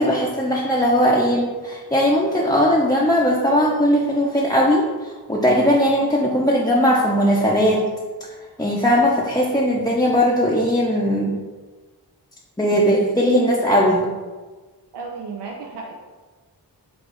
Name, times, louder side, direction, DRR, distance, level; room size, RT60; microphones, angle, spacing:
voice 1, 0.0-7.8 8.6-11.3 12.6-14.1, equal, 10° left, -4 dB, 0.5 m, -18 dB
voice 2, 14.9-15.9, right 4 dB, 85° right, 0 dB, 0.6 m, -33 dB
4.7 x 2.3 x 3.8 m, 1.3 s
cardioid pair, 45°, 39 cm